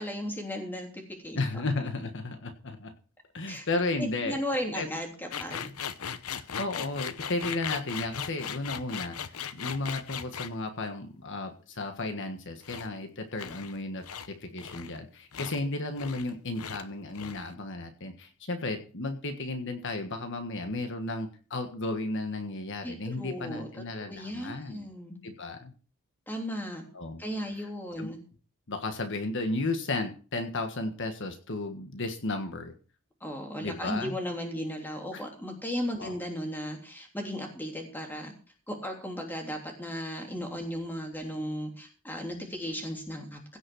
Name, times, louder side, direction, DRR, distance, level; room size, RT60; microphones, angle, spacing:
voice 1, 0.0-1.6 3.5-3.6 4.0-5.7 22.8-23.7 23.9-25.2 26.3-26.8 27.2-28.2 33.2-38.3 38.7-43.6, equal, 10° left, 2 dB, 3.2 m, -36 dB
voice 2, 1.3-2.9 3.3-4.4 4.7-4.9 5.6-5.8 6.3-24.9 25.2-25.7 26.9-27.2 28.0-28.1 28.7-32.7 33.6-34.2 35.1-35.2 36.0-36.2, left 2 dB, 55° left, 6 dB, 1.5 m, -34 dB
sound 1, 5.3-10.6 12.6-12.9 13.4-13.8 14.0-14.3 14.6-15.0 15.3-15.6 16.0-16.3 16.6-16.8 17.1-17.5, left 8 dB, 70° left, 0.8 m, -38 dB
16.5 x 6.2 x 6.3 m, 0.38 s
head